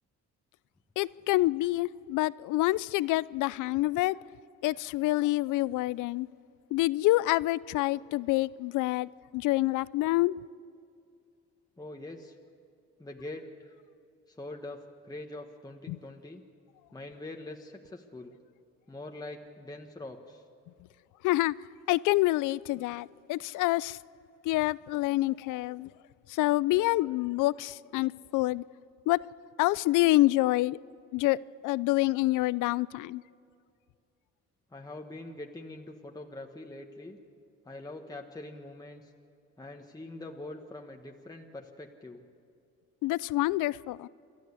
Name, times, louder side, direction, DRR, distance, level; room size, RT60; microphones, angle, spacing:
voice 1, 1.0-4.2 4.6-6.3 6.7-10.4 15.9-16.0 21.2-21.5 21.9-24.0 24.4-25.9 26.3-28.6 29.1-29.2 29.6-30.8 31.1-33.2 43.0-44.1, left 18 dB, 90° left, 0.5 m, -27 dB
voice 2, 11.8-12.4 13.0-13.7 14.3-16.4 16.9-18.4 18.9-20.4 34.7-37.2 37.6-39.1 39.6-42.3, left 2 dB, 10° left, 1.3 m, -43 dB
28.5 x 12.5 x 8.3 m
cardioid pair, 90°, 30 cm